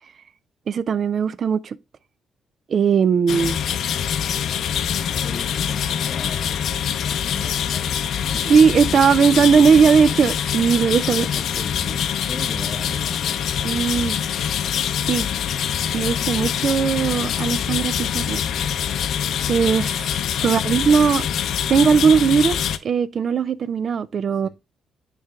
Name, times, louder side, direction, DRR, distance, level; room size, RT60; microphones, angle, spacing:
voice 1, 0.7-1.8 2.7-3.6 8.4-11.3 13.6-14.1 15.1-15.2 15.9-18.4 19.5-20.1 20.4-21.3 21.7-24.5, right 6 dB, 50° right, 0.4 m, -18 dB
sound 1, 3.3-22.8, left 9 dB, 70° left, 0.5 m, -24 dB
voice 2, 5.2-6.7 7.0-8.0 11.1-13.8 20.4-21.2 24.4-24.5, left 1 dB, 20° left, 1.4 m, -38 dB
9.4 x 3.3 x 3.5 m
cardioid pair, 90°, 0 cm